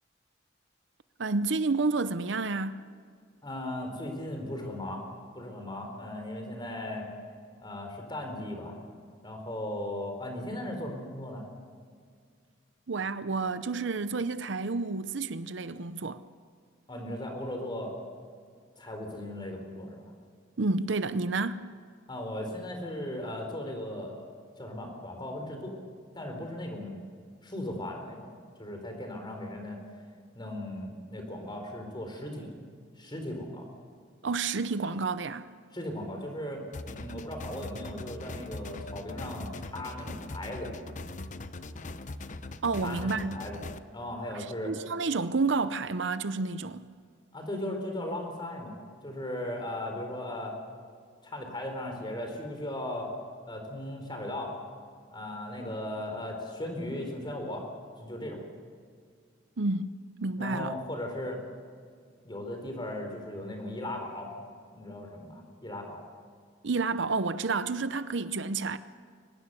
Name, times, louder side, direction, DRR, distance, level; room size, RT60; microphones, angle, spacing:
voice 1, 1.2-2.8 12.9-16.2 20.6-21.7 34.2-35.5 42.6-43.4 44.3-46.9 59.6-59.9 60.2-60.7 66.6-68.8, right 3 dB, 65° right, 0.7 m, -30 dB
voice 2, 3.4-5.0 5.3-7.1 7.6-8.8 9.2-11.5 16.9-17.9 18.8-20.1 22.1-24.3 24.6-25.8 26.1-26.9 27.4-29.8 30.3-32.5 33.0-33.7 35.7-40.7 42.8-43.6 43.9-44.7 47.3-48.8 49.0-50.6 51.2-53.1 53.5-54.5 55.1-57.6 58.0-58.4 60.3-61.4 62.2-64.3 64.7-66.0, left 1 dB, 25° left, 4.4 m, -37 dB
sound 1, 36.7-43.8, left 2 dB, 40° left, 0.8 m, -41 dB
23.5 x 20.0 x 7.0 m
head